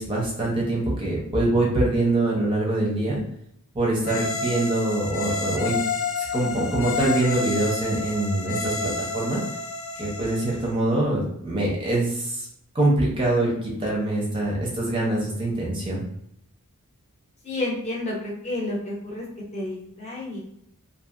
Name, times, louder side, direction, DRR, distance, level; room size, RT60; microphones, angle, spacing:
voice 1, 0.0-3.2 3.7-5.8 6.2-9.4 10.0-12.5 12.7-16.0, right 2 dB, 25° right, -3 dB, 0.5 m, -24 dB
sound 1, 4.0-10.7, left 3 dB, 60° left, 0.4 m, -30 dB
voice 2, 17.4-19.3 19.5-20.4, left 2 dB, 30° left, -4 dB, 0.7 m, -30 dB
2.7 x 2.5 x 2.4 m, 0.73 s
head